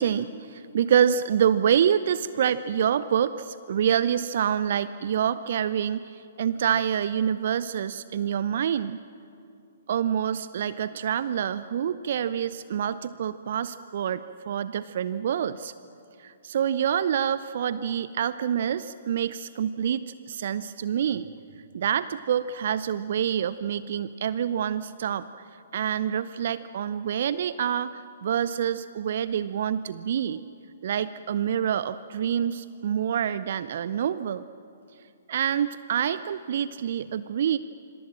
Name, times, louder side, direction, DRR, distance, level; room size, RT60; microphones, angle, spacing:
voice 1, 0.0-9.0 9.9-15.7 16.2-21.3 21.7-25.3 25.7-30.4 30.8-34.4 35.3-37.6, right 9 dB, 50° right, 15 dB, 0.6 m, -27 dB
26.5 x 26.0 x 7.5 m, 2.6 s
figure-of-eight pair, 120°, 0 cm